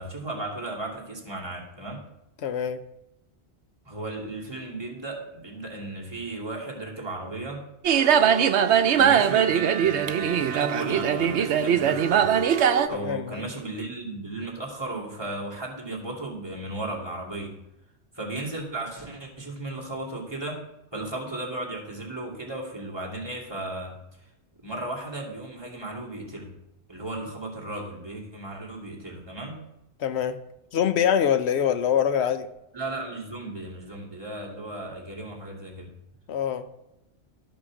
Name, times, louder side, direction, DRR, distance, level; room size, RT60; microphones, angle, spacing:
voice 1, 0.0-2.0 3.9-7.6 8.9-12.3 12.8-17.6 18.1-20.6 20.9-24.0 24.6-26.5 26.9-29.6 32.7-35.9, right 2 dB, 20° right, -4 dB, 2.7 m, -35 dB
voice 2, 2.4-2.8 12.9-13.4 30.0-30.4 30.7-32.5 36.3-36.6, left 8 dB, 75° left, 10 dB, 1.0 m, -24 dB
sound 1, 7.8-12.9, right 8 dB, 85° right, 1.0 m, -21 dB
13.0 x 6.2 x 6.3 m, 0.88 s
omnidirectional pair, 1.1 m